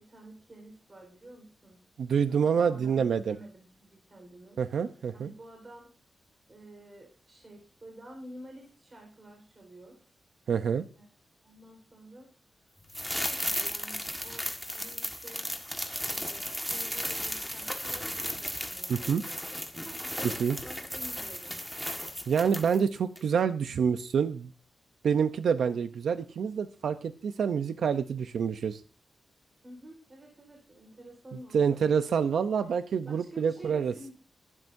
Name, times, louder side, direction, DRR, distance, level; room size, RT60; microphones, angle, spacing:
voice 1, 0.0-1.8 2.2-4.6 5.1-5.9 6.5-10.0 11.0-11.1 11.4-12.3 13.1-15.8 16.0-19.4 19.7-20.3 20.6-21.6 29.6-31.8 32.4-32.7 33.0-34.1, right 1 dB, 25° right, 1 dB, 4.4 m, -50 dB
voice 2, 2.0-3.4 4.6-5.3 10.5-10.8 18.9-19.2 20.4-20.6 22.3-24.5 25.0-28.8 31.5-33.9, right 7 dB, 90° right, 9 dB, 0.7 m, -27 dB
sound 1, 12.9-22.9 23.2-23.3, equal, ahead, 1.6 m, -35 dB
23.5 x 12.0 x 2.7 m, 0.36 s
wide cardioid pair, 170°, 0 cm